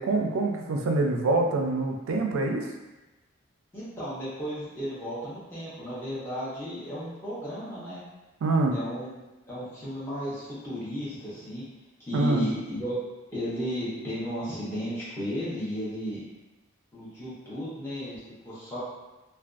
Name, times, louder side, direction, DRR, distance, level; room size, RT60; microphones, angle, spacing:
voice 1, 0.0-2.7 8.4-8.8 12.1-12.4, right 2 dB, 85° right, 2 dB, 0.4 m, -25 dB
voice 2, 3.7-8.0 8.7-11.6 12.0-13.0 13.3-16.2 16.9-18.2 18.5-18.8, equal, 10° left, -11 dB, 0.7 m, -34 dB
2.4 x 2.2 x 2.4 m, 1.1 s
head